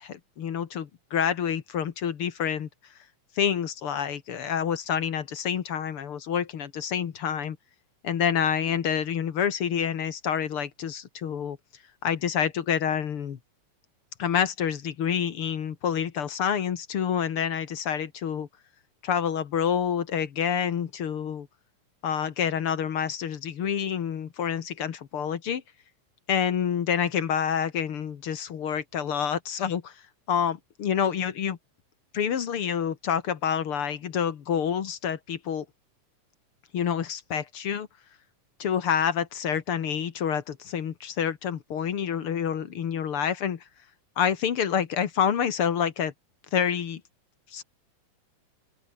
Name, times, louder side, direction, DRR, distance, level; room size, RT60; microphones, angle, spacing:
voice 1, 0.0-2.7 3.4-7.6 8.0-11.6 12.0-13.4 14.2-18.5 19.0-21.5 22.0-25.6 26.3-29.9 30.3-31.6 32.1-35.7 36.7-37.9 38.6-43.6 44.2-46.1 46.5-47.0 47.5-47.6, left 8 dB, 50° left, 2.0 m, -28 dB
open air
omnidirectional pair, 3.7 m